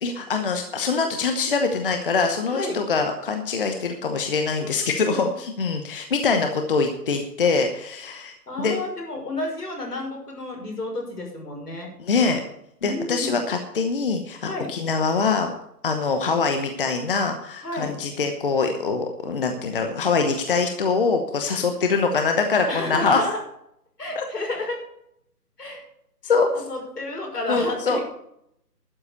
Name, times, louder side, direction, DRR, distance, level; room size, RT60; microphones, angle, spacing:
voice 1, 0.0-8.8 12.0-12.4 12.8-15.5 15.8-23.2 24.1-24.2 26.2-26.5 27.5-28.0, left 4 dB, 35° left, 5 dB, 1.0 m, -24 dB
voice 2, 2.5-2.8 4.6-4.7 5.0-5.2 8.5-11.9 12.8-13.4 14.4-14.7 17.6-17.9 22.7-23.4 24.0-24.8 25.6-25.8 26.7-28.0, left 2 dB, 75° left, 1 dB, 6.1 m, -31 dB
12.0 x 8.0 x 6.9 m, 0.76 s
figure-of-eight pair, 155°, 48 cm